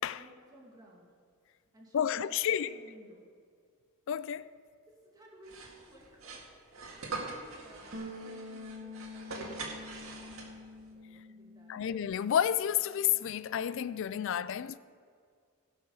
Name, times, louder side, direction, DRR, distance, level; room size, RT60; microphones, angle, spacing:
voice 1, 0.1-1.1 1.7-3.3 4.9-6.5 6.7-10.5 10.9-11.7 14.1-14.2, equal, 20° right, 2.4 m, -57 dB
voice 2, 1.9-2.8 4.1-4.5 11.7-14.8, left 9 dB, 65° left, 0.3 m, -30 dB
sound 1, 5.4-10.8, right 3 dB, 80° right, 1.9 m, -43 dB
sound 2, 7.9-12.5 12.8-14.2, left 2 dB, 45° right, 1.3 m, -48 dB
17.0 x 5.9 x 5.5 m
head